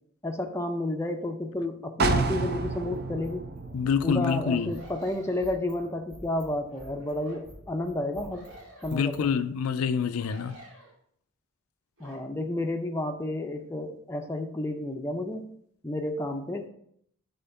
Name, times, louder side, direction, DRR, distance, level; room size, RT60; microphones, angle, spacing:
voice 1, 0.2-3.5 4.0-8.5 8.8-9.3 12.0-15.5 15.8-16.7, left 1 dB, 10° left, 0.5 m, -31 dB
sound 1, 2.0-5.7 6.1-6.2, right 3 dB, 45° right, 0.5 m, -31 dB
sound 2, 2.4-9.3, equal, 15° right, 2.3 m, -49 dB
voice 2, 3.7-4.7 8.9-10.6, left 6 dB, 80° left, 0.4 m, -26 dB
sound 3, 4.5-5.6 6.7-7.4 8.3-9.1 10.1-10.9 12.0-12.2, right 1 dB, 75° right, 2.6 m, -50 dB
5.6 x 3.8 x 5.4 m
head